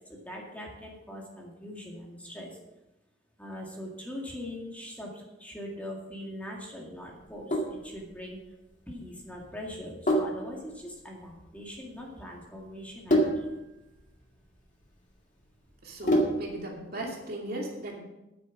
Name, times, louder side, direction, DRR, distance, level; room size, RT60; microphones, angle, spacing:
voice 1, 0.0-2.6 3.4-8.4 8.9-13.6, left 1 dB, 10° left, -2 dB, 2.1 m, -42 dB
Sink (filling or washing), 7.2-16.7, equal, 40° left, 2.0 m, -31 dB
voice 2, 15.8-18.0, right 1 dB, 50° right, -1 dB, 2.7 m, -37 dB
9.4 x 9.3 x 6.1 m, 0.95 s
head